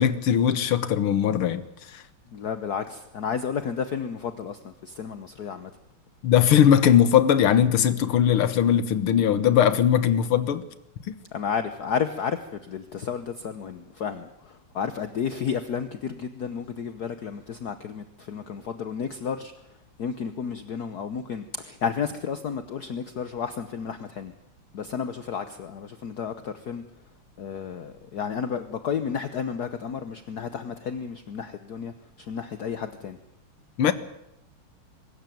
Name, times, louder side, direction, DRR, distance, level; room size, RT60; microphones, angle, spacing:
voice 1, 0.0-1.6 1.9-2.0 6.2-10.6 11.1-11.2 33.8-33.9, left 9 dB, 75° left, 2.1 m, -20 dB
voice 2, 2.3-5.7 11.3-24.3 24.7-26.8 27.4-33.2, left 7 dB, 55° left, 1.3 m, -32 dB
23.5 x 14.0 x 9.3 m
omnidirectional pair, 2.4 m